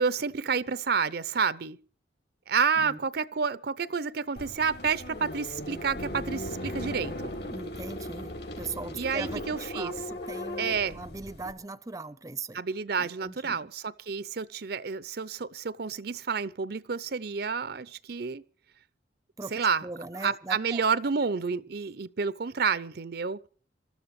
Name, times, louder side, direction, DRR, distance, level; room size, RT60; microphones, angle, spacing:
voice 1, 0.0-1.8 2.5-7.3 8.9-9.9 10.6-11.0 12.5-18.4 19.5-19.9 20.2-23.4, right 5 dB, 55° right, 0.6 m, -29 dB
sound 1, 4.4-11.5, left 1 dB, 60° left, 5.2 m, -37 dB
voice 2, 7.5-9.4 9.7-12.6 13.0-13.6 19.4-20.8, right 3 dB, 20° right, 0.6 m, -40 dB
26.5 x 13.5 x 3.2 m
head